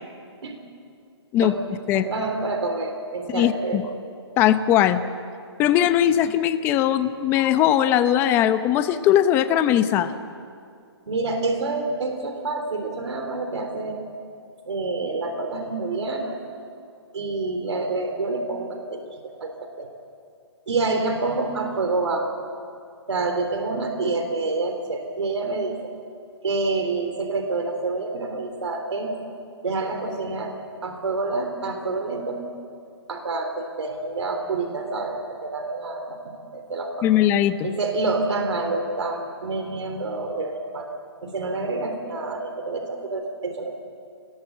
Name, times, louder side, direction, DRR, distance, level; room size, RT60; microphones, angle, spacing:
voice 1, 1.9-3.8 11.1-14.0 14.6-16.4 17.1-19.9 20.7-22.4 23.1-25.9 26.4-29.1 29.6-30.5 30.8-32.4 33.1-36.2 36.5-37.1 37.6-40.9 41.2-43.7, right 3 dB, 75° right, 5 dB, 3.6 m, -27 dB
voice 2, 3.3-3.8 4.4-5.0 5.6-10.1 37.0-37.7, left 11 dB, 15° left, 11 dB, 0.7 m, -19 dB
24.5 x 20.0 x 8.1 m, 2.4 s
hypercardioid pair, 160°, 15 cm